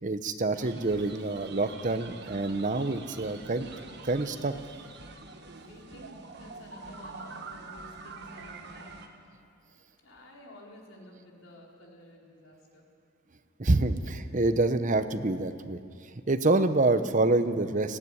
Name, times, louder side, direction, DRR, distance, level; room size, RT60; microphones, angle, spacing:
voice 1, 0.0-3.7 4.0-4.5 13.6-15.8 16.3-18.0, right 2 dB, 35° right, 10 dB, 0.9 m, -26 dB
sound 1, 0.5-9.1, right 4 dB, 55° right, 1.5 m, -46 dB
voice 2, 5.6-9.1 10.0-12.8, left 1 dB, 75° left, -1 dB, 4.0 m, -51 dB
18.5 x 15.5 x 9.9 m, 2.3 s
head